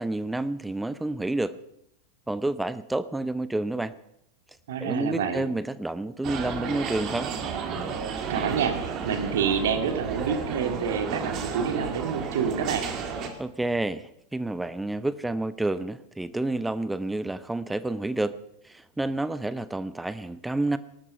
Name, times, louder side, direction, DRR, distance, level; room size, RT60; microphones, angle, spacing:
voice 1, 0.0-1.6 2.3-3.9 4.8-7.3 13.4-18.4 18.6-20.8, right 2 dB, 5° right, 15 dB, 0.7 m, -29 dB
voice 2, 4.7-5.5 8.3-12.8, right 7 dB, 60° right, 8 dB, 2.2 m, -28 dB
sound 1, 6.2-13.3, right 6 dB, 35° right, 2.4 m, -32 dB
19.0 x 12.5 x 5.5 m, 0.77 s
figure-of-eight pair, 90°, 0 cm